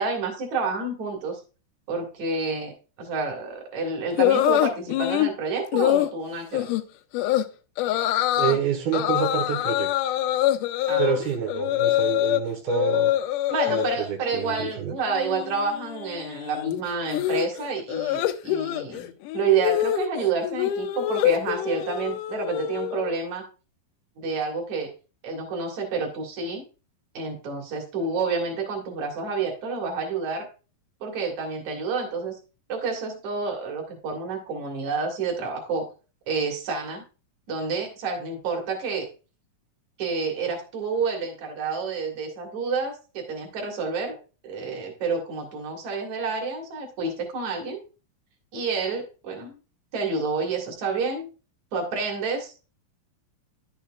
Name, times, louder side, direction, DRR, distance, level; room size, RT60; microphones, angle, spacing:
voice 1, 0.0-1.4 1.9-2.7 3.0-6.7 10.9-11.2 13.5-23.5 24.2-24.9 25.2-26.6 27.1-30.5 31.0-32.4 32.7-35.9 36.3-37.0 37.5-39.1 40.0-44.2 44.4-47.8 48.5-49.6 49.9-51.3 51.7-52.5, right 4 dB, 55° right, 1 dB, 3.1 m, -29 dB
sound 1, 4.2-5.3 5.7-6.1 6.5-6.8 7.1-7.4 7.8-8.6 8.9-12.4 12.7-14.0 14.3-14.7 15.0-23.2, left 13 dB, 80° left, 1.9 m, -25 dB
voice 2, 8.4-9.9 11.0-13.1 13.7-15.0, right 8 dB, 90° right, 2 dB, 3.3 m, -27 dB
11.0 x 7.1 x 2.4 m, 0.33 s
omnidirectional pair, 4.2 m